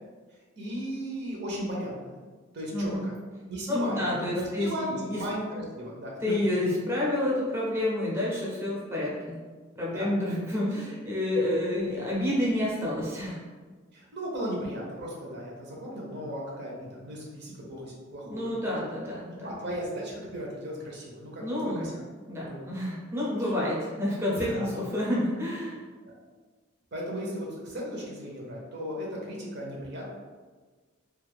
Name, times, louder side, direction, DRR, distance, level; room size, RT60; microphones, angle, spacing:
voice 1, 0.6-2.1 2.5-3.1 3.5-4.9 5.1-6.1 9.9-10.1 13.9-18.8 19.2-21.9 22.4-22.7 23.4-23.5 24.4-24.7 26.1-26.2 26.9-30.1, equal, 55° right, -3 dB, 0.7 m, -36 dB
voice 2, 2.7-3.1 3.7-5.2 6.2-9.4 9.8-13.4 18.3-19.6 21.4-21.9 22.3-25.8, left 1 dB, 10° right, -5 dB, 0.6 m, -29 dB
2.8 x 2.4 x 3.3 m, 1.4 s
head